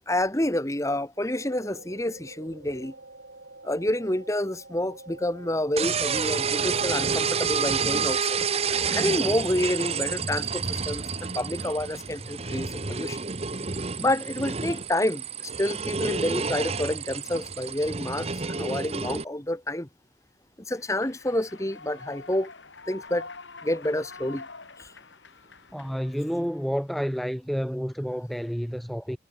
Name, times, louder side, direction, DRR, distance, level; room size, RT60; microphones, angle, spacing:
voice 1, 0.1-2.9 3.6-8.4 8.9-13.2 14.0-19.9 20.7-22.5 22.9-23.3 23.6-24.5 24.8-24.9, left 1 dB, 15° left, 1.5 m, -28 dB
sound 1, 1.2-6.9, right 2 dB, 65° right, 6.4 m, -47 dB
sound 2, 5.8-19.2, right 5 dB, 35° right, 1.0 m, -29 dB
Human voice / Clapping / Cheering, 20.7-26.7, left 4 dB, 75° left, 5.4 m, -46 dB
voice 2, 25.7-29.2, equal, ahead, 0.7 m, -30 dB
head